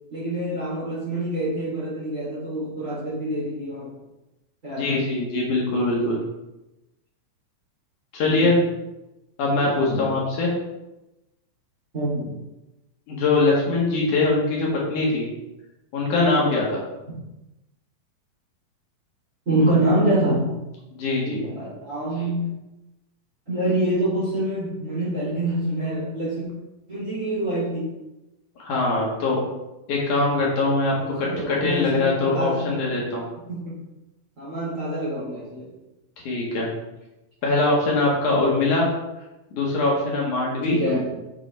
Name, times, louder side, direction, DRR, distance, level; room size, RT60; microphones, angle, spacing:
voice 1, 0.1-3.9 4.6-5.1 8.2-8.5 9.9-10.0 11.9-12.3 19.4-20.4 21.2-22.5 23.5-26.4 26.9-27.9 31.0-32.7 33.5-33.8 34.4-35.7 40.7-41.0, right 1 dB, 20° right, -8 dB, 3.1 m, -26 dB
voice 2, 4.8-6.2 8.1-8.6 9.4-10.5 13.1-15.3 15.9-16.8 20.9-21.4 28.6-29.4 29.9-33.2 36.2-36.7 37.4-38.9 39.5-40.8, left 2 dB, 65° left, -4 dB, 3.0 m, -22 dB
8.1 x 7.5 x 3.4 m, 0.97 s
omnidirectional pair, 4.1 m